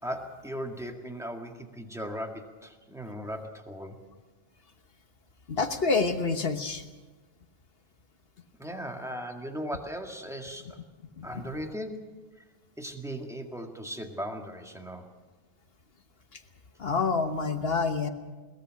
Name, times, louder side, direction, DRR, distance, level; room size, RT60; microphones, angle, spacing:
voice 1, 0.0-4.0 8.6-10.8 11.2-12.1 12.8-15.1, equal, ahead, 3 dB, 1.9 m, -37 dB
voice 2, 5.5-6.8 11.2-11.4 16.8-18.1, left 4 dB, 55° left, 7 dB, 1.5 m, -27 dB
22.5 x 19.5 x 6.5 m, 1.3 s
omnidirectional pair, 1.2 m